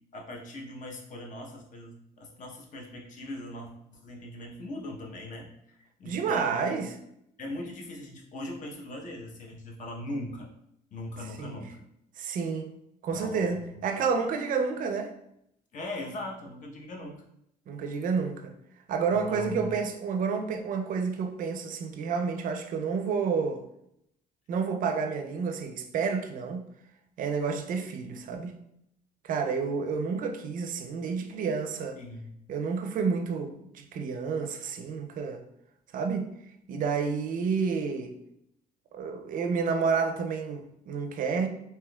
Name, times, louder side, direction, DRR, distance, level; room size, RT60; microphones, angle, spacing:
voice 1, 0.1-6.8 7.4-10.5 10.9-11.9 13.1-13.8 15.7-17.2 19.1-19.8 32.0-32.3, left 1 dB, 50° left, 0.8 m, -40 dB
voice 2, 6.1-6.9 11.4-11.5 12.2-12.7 13.0-15.1 17.7-18.5 18.9-23.6 24.5-26.6 27.2-28.6 29.2-32.0 32.5-35.4 35.9-36.3 36.7-38.1 38.9-41.5, right 5 dB, 55° right, 0.5 m, -30 dB
3.5 x 2.8 x 2.2 m
cardioid pair, 110°, 17 cm